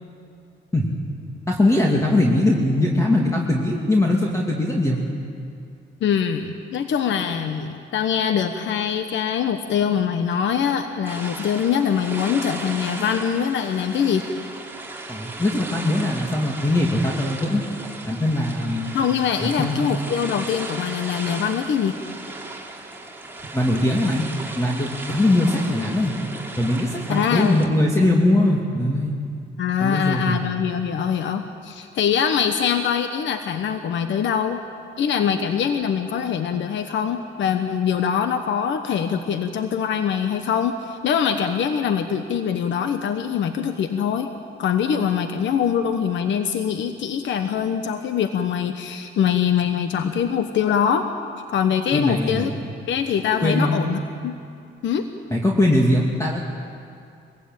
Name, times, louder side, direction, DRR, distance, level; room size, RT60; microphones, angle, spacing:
voice 1, 1.5-5.0 15.1-17.6 18.0-18.9 19.4-19.9 23.5-24.3 24.6-26.2 26.6-29.1 29.8-30.4 51.9-52.6 53.4-53.8 55.3-56.5, left 1 dB, 15° left, -2 dB, 2.5 m, -21 dB
voice 2, 6.0-14.3 18.9-22.0 27.1-27.6 29.6-34.6 35.0-44.3 44.6-51.1 51.5-52.5 52.9-54.4 54.8-55.1, left 8 dB, 70° left, 7 dB, 1.1 m, -23 dB
sound 1, 11.0-27.7, right 2 dB, 10° right, 3.2 m, -36 dB
22.5 x 16.0 x 8.9 m, 2.4 s
cardioid pair, 90°, 20 cm